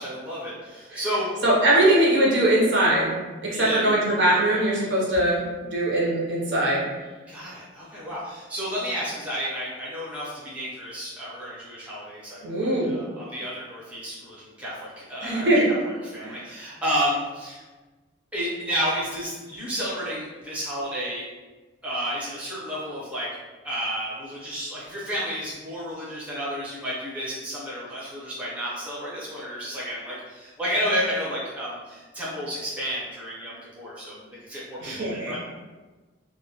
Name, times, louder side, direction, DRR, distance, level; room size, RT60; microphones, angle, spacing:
voice 1, 0.0-1.3 3.5-4.0 4.2-4.7 7.3-15.8 16.1-17.6 18.3-21.2 21.8-23.3 23.6-35.4, equal, 5° right, -8 dB, 0.6 m, -31 dB
voice 2, 1.4-5.4 5.7-6.8 12.4-13.0 15.2-15.6 16.2-16.4 34.8-35.3, right 1 dB, 60° right, -4 dB, 0.6 m, -21 dB
2.1 x 2.1 x 2.8 m, 1.3 s
head